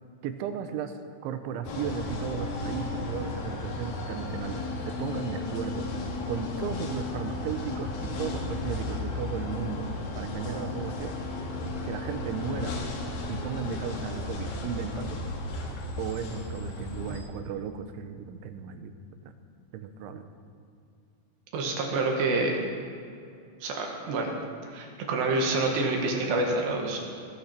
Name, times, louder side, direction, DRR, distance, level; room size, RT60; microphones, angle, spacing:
voice 1, 0.2-0.9 1.2-5.9 6.3-9.9 10.2-11.2 11.8-12.8 13.3-15.3 16.0-18.9 19.7-20.2, right 7 dB, 90° right, 8 dB, 3.3 m, -35 dB
sound 1, 1.6-17.2, left 2 dB, 60° left, 3.0 m, -34 dB
voice 2, 21.5-22.6 23.6-24.3 24.7-27.0, right 2 dB, 70° right, 1 dB, 3.7 m, -27 dB
19.0 x 15.0 x 4.4 m, 2.4 s
omnidirectional pair, 5.3 m